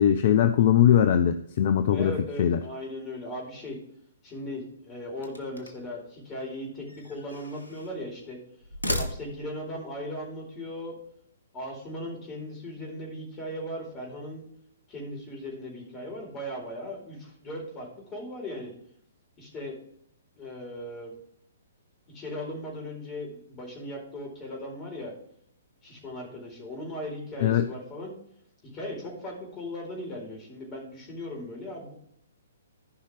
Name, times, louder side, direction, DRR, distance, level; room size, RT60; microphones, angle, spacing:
voice 1, 0.0-2.6 27.4-27.7, left 10 dB, 45° left, 10 dB, 0.6 m, -21 dB
voice 2, 1.9-3.8 4.2-8.4 8.9-11.0 11.5-14.4 14.9-18.7 19.4-19.8 20.4-21.1 22.1-25.1 25.8-28.1 28.7-31.9, left 1 dB, 20° left, 0 dB, 4.3 m, -38 dB
sound 1, 5.2-6.0 6.9-8.0 8.6-9.7, left 1 dB, 80° left, 1.6 m, -35 dB
15.0 x 5.6 x 3.6 m, 0.68 s
figure-of-eight pair, 120°, 0 cm